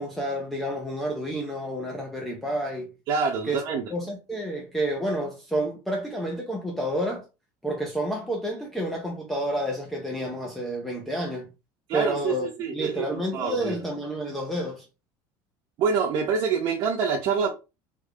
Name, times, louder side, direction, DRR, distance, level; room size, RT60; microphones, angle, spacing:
voice 1, 0.0-2.9 3.5-3.6 3.9-7.2 7.6-11.5 11.9-14.8, right 1 dB, 5° left, 0.5 m, -30 dB
voice 2, 3.1-3.8 11.9-13.7 15.8-17.5, right 6 dB, 45° right, 0.6 m, -26 dB
3.3 x 2.3 x 3.5 m
cardioid pair, 170°, 10 cm